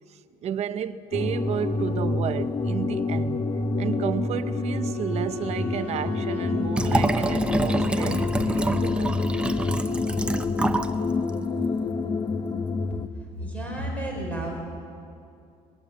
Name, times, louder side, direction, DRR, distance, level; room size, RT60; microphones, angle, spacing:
voice 1, 0.1-3.4 3.8-9.3, right 9 dB, 40° right, 0.8 m, -32 dB
sound 1, 1.1-13.1, left 3 dB, 25° left, 0.9 m, -27 dB
Wind instrument woodwind instrument, 3.6-8.6, left 5 dB, 80° left, 3.9 m, -42 dB
Liquid, 6.7-11.0 11.3-11.4, right 2 dB, 5° right, 0.7 m, -27 dB
voice 2, 13.4-14.6, right 1 dB, 10° left, 5.5 m, -31 dB
21.5 x 21.5 x 8.3 m
cardioid pair, 155°, 16 cm